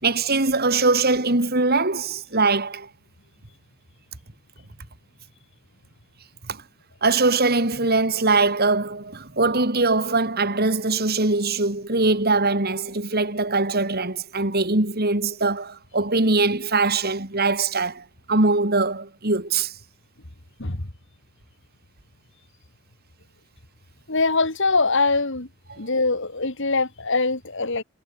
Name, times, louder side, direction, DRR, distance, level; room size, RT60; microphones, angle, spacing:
voice 1, 0.0-2.9 6.5-6.6 7.0-19.7 25.7-25.8, right 3 dB, 45° right, 3.1 m, -22 dB
voice 2, 24.1-25.5 25.8-27.8, left 3 dB, 60° left, 2.6 m, -23 dB
head